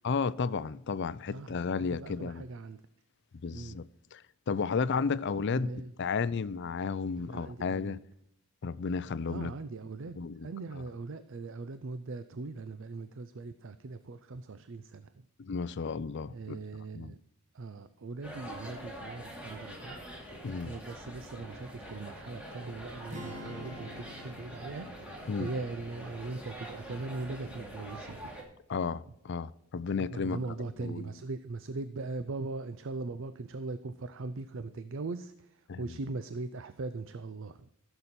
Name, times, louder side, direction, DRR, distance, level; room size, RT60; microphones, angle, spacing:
voice 1, 0.0-2.4 3.4-3.8 4.1-5.7 6.0-8.0 8.6-9.5 10.2-10.5 15.4-16.6 16.9-17.1 20.4-20.8 25.3-25.5 28.7-30.4 30.8-31.1 35.7-35.8, left 5 dB, 50° left, 0.4 m, -33 dB
voice 2, 1.3-2.8 3.5-3.8 5.5-5.9 7.2-8.0 9.3-15.1 16.3-17.2 17.5-20.0 20.6-28.3 30.1-37.7, right 3 dB, 60° right, 0.5 m, -40 dB
sound 1, 18.2-28.4, equal, 5° right, 2.4 m, -45 dB
sound 2, 23.1-27.3, left 1 dB, 35° right, 1.5 m, -48 dB
15.0 x 6.9 x 4.2 m
head